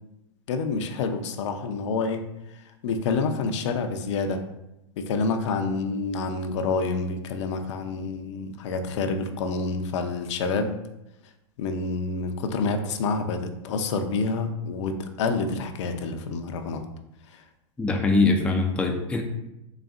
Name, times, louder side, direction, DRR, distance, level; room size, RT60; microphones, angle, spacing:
voice 1, 0.5-2.2 2.8-4.4 5.0-10.7 11.6-16.8, left 4 dB, 70° left, 6 dB, 0.5 m, -28 dB
voice 2, 17.8-19.2, left 3 dB, 5° left, 2 dB, 0.3 m, -22 dB
4.0 x 3.3 x 2.4 m, 0.89 s
hypercardioid pair, 120°, 16 cm